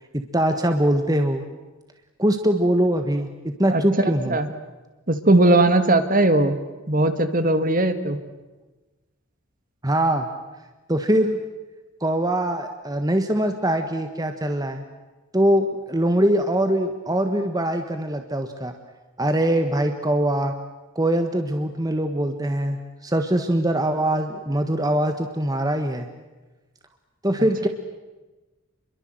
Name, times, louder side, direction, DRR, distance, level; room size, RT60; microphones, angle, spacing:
voice 1, 0.1-1.4 2.2-3.3 3.6-4.4 9.8-10.3 10.9-11.4 12.0-14.8 15.3-18.8 19.2-20.5 20.9-26.1 27.2-27.7, right 1 dB, 15° right, 6 dB, 1.5 m, -22 dB
voice 2, 3.7-4.5 5.1-6.5 6.9-8.2, right 2 dB, 40° right, 10 dB, 1.9 m, -19 dB
29.5 x 23.0 x 7.9 m, 1.2 s
head